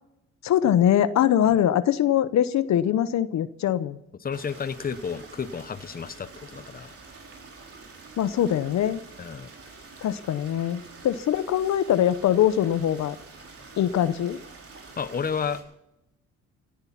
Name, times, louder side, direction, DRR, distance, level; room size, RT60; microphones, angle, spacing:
voice 1, 0.4-4.0 8.2-9.0 10.0-13.2 13.8-14.4, left 10 dB, 65° left, 14 dB, 0.8 m, -22 dB
voice 2, 4.2-7.0 9.2-9.5 15.0-15.6, left 6 dB, 30° left, 13 dB, 0.9 m, -31 dB
Stream, 4.3-15.6, right 3 dB, 50° right, 4.2 m, -47 dB
17.5 x 12.5 x 5.8 m, 0.87 s
cardioid pair, 90°, 30 cm